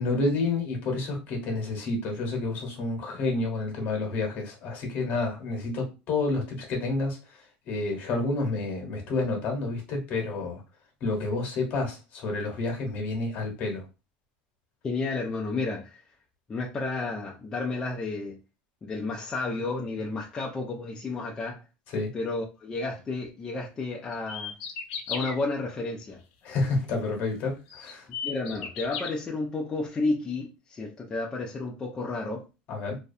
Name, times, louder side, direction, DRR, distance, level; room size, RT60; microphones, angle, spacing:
voice 1, 0.0-7.2 7.7-10.6 11.0-13.8 21.9-22.1 26.4-28.1 32.7-33.0, left 3 dB, 45° left, 1.0 m, -29 dB
voice 2, 14.8-16.0 16.5-18.4 18.8-21.7 22.1-24.5 25.1-26.2 28.2-32.4, left 3 dB, 20° left, 0.3 m, -31 dB
sound 1, 24.1-25.3 27.0-27.1 27.7-29.1, left 7 dB, 85° left, 0.6 m, -35 dB
2.4 x 2.1 x 2.6 m
cardioid pair, 145°, 4 cm